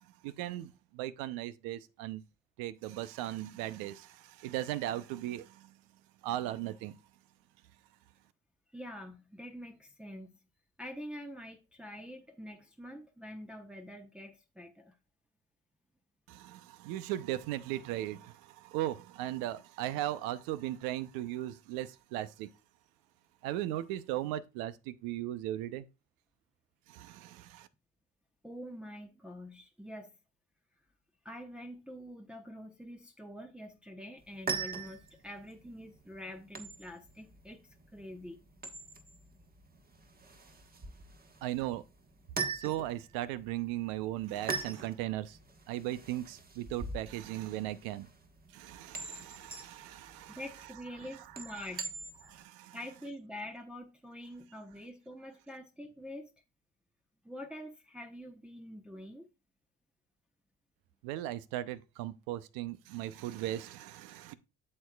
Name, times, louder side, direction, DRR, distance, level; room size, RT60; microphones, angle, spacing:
voice 1, 0.2-2.2 2.6-5.7 6.2-6.9 16.3-22.5 23.4-25.9 26.9-27.7 41.4-41.8 42.5-45.4 45.7-48.1 48.5-50.4 52.2-52.8 61.0-64.3, right 14 dB, 80° right, 0.7 m, -37 dB
voice 2, 8.7-10.4 10.8-15.0 28.4-30.2 31.2-37.6 37.9-38.4 50.3-51.9 52.7-56.3 57.2-59.3, equal, 5° right, 0.8 m, -46 dB
sound 1, 34.2-52.4, right 4 dB, 25° right, 1.3 m, -42 dB
8.6 x 6.7 x 2.3 m
supercardioid pair, 75°, 34 cm